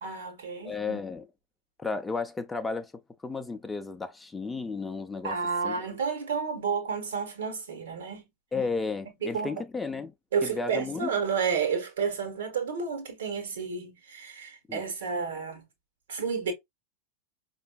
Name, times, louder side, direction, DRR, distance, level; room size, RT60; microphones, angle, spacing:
voice 1, 0.0-1.0 5.2-8.2 9.2-9.6 10.3-15.6 16.1-16.5, right 6 dB, 60° right, 1.4 m, -31 dB
voice 2, 0.6-1.2 1.8-5.4 5.6-5.8 8.5-10.1 10.4-11.1 14.7-14.8, left 4 dB, 10° left, 0.5 m, -33 dB
5.2 x 2.6 x 2.3 m
figure-of-eight pair, 90°, 0 cm